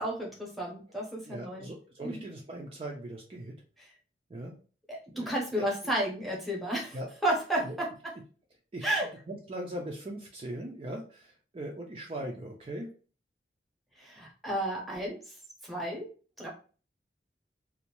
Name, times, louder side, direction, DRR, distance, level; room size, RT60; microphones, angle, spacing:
voice 1, 0.0-1.7 2.0-2.2 4.9-7.0 7.2-7.9 8.8-9.1 14.0-15.2 15.6-16.1 16.4-16.5, right 1 dB, ahead, -3 dB, 0.7 m, -32 dB
voice 2, 1.3-3.5 4.3-4.5 5.1-5.3 6.9-7.1 7.6-7.7 8.7-8.9 9.3-12.9, right 1 dB, 30° right, 0 dB, 0.4 m, -39 dB
2.6 x 2.0 x 2.9 m, 0.38 s
head